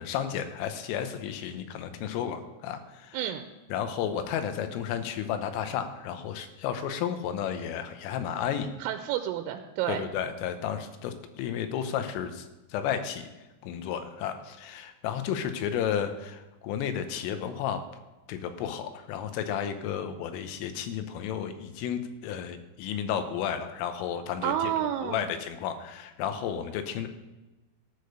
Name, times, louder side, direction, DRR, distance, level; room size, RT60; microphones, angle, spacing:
voice 1, 0.0-3.2 3.7-8.7 9.9-13.3 13.6-17.8 18.3-24.7 25.0-27.1, left 8 dB, 85° left, 8 dB, 3.5 m, -32 dB
voice 2, 3.1-3.5 8.8-10.0 24.4-25.3, right 11 dB, 85° right, 7 dB, 3.2 m, -30 dB
14.5 x 6.8 x 6.5 m, 1.1 s
omnidirectional pair, 5.8 m